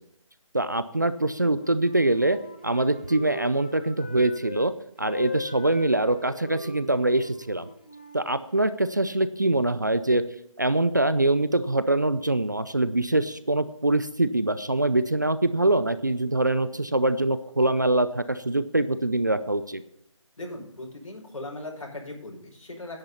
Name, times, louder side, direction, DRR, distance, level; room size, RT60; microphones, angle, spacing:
voice 1, 0.5-2.4 2.6-4.7 5.0-7.7 8.1-10.2 10.6-19.8, right 2 dB, 35° right, 13 dB, 0.4 m, -24 dB
Wind instrument woodwind instrument, 1.4-4.7 5.0-8.7, left 2 dB, 15° left, 0.6 m, -41 dB
voice 2, 20.4-23.0, left 2 dB, 90° left, -2 dB, 5.5 m, -38 dB
10.5 x 8.9 x 5.5 m, 0.74 s
figure-of-eight pair, 180°, 17 cm